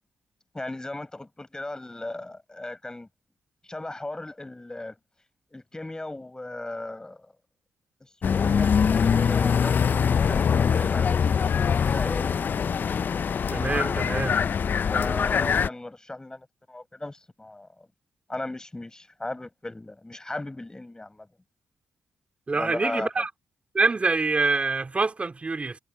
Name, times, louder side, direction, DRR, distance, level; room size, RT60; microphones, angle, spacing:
voice 1, 0.5-3.1 3.7-5.0 5.5-7.3 8.0-12.4 14.9-17.9 18.3-21.3 22.5-23.1, left 2 dB, 15° left, 6.9 m, -37 dB
sound 1, 8.2-15.7, left 7 dB, 50° left, 0.4 m, -23 dB
voice 2, 13.5-14.4 22.5-23.3 23.7-25.8, right 3 dB, 30° right, 3.6 m, -25 dB
cardioid pair, 85°, 4 cm